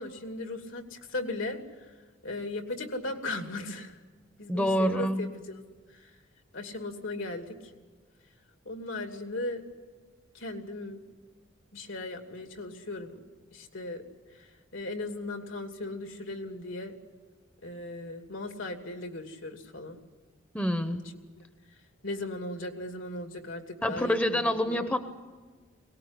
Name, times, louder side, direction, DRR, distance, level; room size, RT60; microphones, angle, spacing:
voice 1, 0.0-1.6 2.2-4.0 4.4-5.6 5.9-6.1 6.5-7.6 8.6-9.6 10.3-11.0 11.7-13.2 13.5-14.0 14.4-16.9 17.6-20.0 21.4-21.5 22.0-24.9, left 2 dB, 75° left, 5 dB, 2.7 m, -37 dB
voice 2, 4.5-5.3 20.5-21.0 23.8-25.0, equal, 5° left, 8 dB, 0.8 m, -27 dB
22.0 x 19.0 x 9.9 m, 1.4 s
head